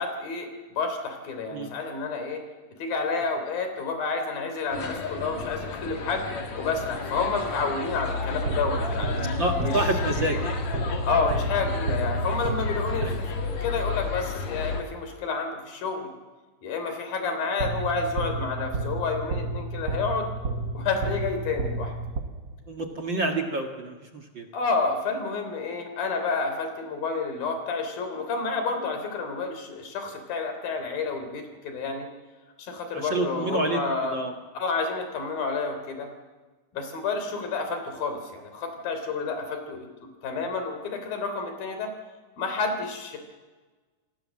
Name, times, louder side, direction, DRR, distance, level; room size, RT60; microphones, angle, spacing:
voice 1, 0.0-2.4 2.8-6.3 6.6-9.1 9.6-9.9 11.1-16.1 16.6-20.3 20.7-21.9 24.5-32.1 32.6-34.2 34.6-36.1 36.7-39.9 40.2-41.9 42.4-43.2, left 4 dB, 85° left, 6 dB, 5.3 m, -29 dB
sound 1, 4.7-14.8, left 4 dB, 55° left, 3.4 m, -32 dB
sound 2, 8.5-13.6 17.6-22.8, right 2 dB, 75° right, 1.0 m, -31 dB
voice 2, 9.4-10.6 13.0-13.2 22.7-24.5 32.9-34.3, right 2 dB, 40° right, 3 dB, 1.9 m, -28 dB
28.5 x 19.5 x 7.6 m, 1.3 s
omnidirectional pair, 4.0 m